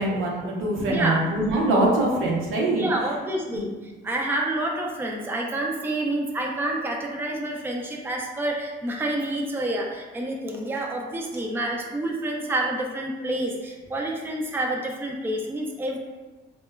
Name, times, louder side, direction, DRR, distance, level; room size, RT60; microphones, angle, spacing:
voice 1, 0.0-2.8 3.5-3.6, right 1 dB, 85° right, -3 dB, 0.7 m, -23 dB
voice 2, 0.8-1.2 2.7-16.0, right 1 dB, 10° right, 0 dB, 0.4 m, -28 dB
2.8 x 2.2 x 2.2 m, 1.2 s
cardioid pair, 90°, 20 cm